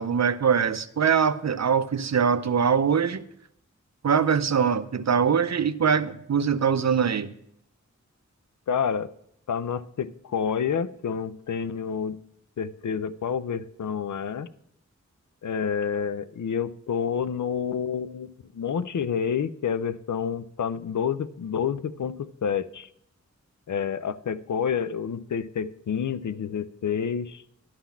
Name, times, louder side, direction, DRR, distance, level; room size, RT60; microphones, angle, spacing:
voice 1, 0.0-3.2 4.0-7.3, right 7 dB, 65° right, 13 dB, 0.5 m, -23 dB
voice 2, 8.7-9.1 9.5-12.2 12.6-14.5 15.4-22.9 23.7-27.4, left 7 dB, 75° left, 14 dB, 0.5 m, -29 dB
11.5 x 3.8 x 7.1 m, 0.73 s
wide cardioid pair, 55°, 30 cm